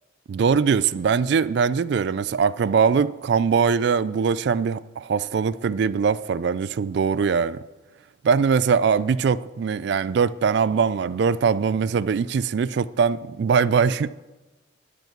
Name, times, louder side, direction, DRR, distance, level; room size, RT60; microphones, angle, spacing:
voice 1, 0.3-7.6 8.2-14.1, right 6 dB, 60° right, 0.3 m, -22 dB
10.5 x 8.0 x 4.5 m
head